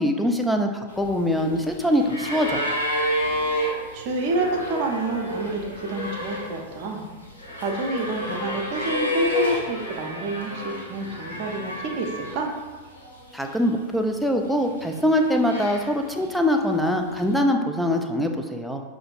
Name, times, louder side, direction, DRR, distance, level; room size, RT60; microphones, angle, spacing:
voice 1, 0.0-2.7 13.3-18.8, left 1 dB, ahead, 3 dB, 0.4 m, -23 dB
sound 1, 0.9-12.6 12.9-13.8 14.5-16.2 17.2-17.3, equal, 80° left, 1.3 m, -30 dB
voice 2, 3.9-7.1 7.5-12.5, right 2 dB, 45° right, 1 dB, 0.6 m, -28 dB
5.7 x 2.6 x 2.3 m, 1.3 s
figure-of-eight pair, 90°, 0 cm